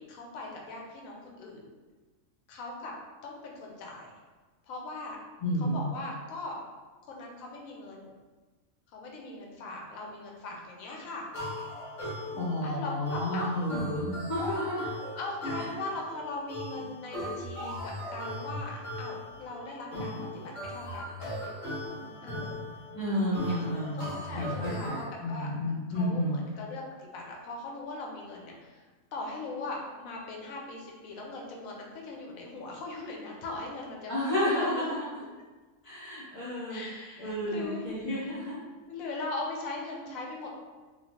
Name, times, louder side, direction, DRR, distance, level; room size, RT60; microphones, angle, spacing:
voice 1, 0.0-1.7 2.5-2.9 3.2-4.1 4.7-5.2 5.6-6.6 7.0-8.1 8.9-11.3 12.6-13.5 15.1-21.1 22.2-22.6 23.3-23.6 23.9-25.5 25.9-28.8 29.1-34.9 36.7-38.4 38.9-40.5, left 2 dB, 90° left, -1 dB, 1.1 m, -40 dB
voice 2, 5.4-5.9 12.3-14.9 15.6-15.7 22.9-24.0 24.4-26.4 34.1-35.1 35.8-36.8 37.2-38.6, left 1 dB, 40° left, -11 dB, 0.5 m, -31 dB
sound 1, 11.3-25.1, left 1 dB, 70° left, 1.3 m, -38 dB
3.0 x 2.2 x 2.8 m, 1.3 s
omnidirectional pair, 1.4 m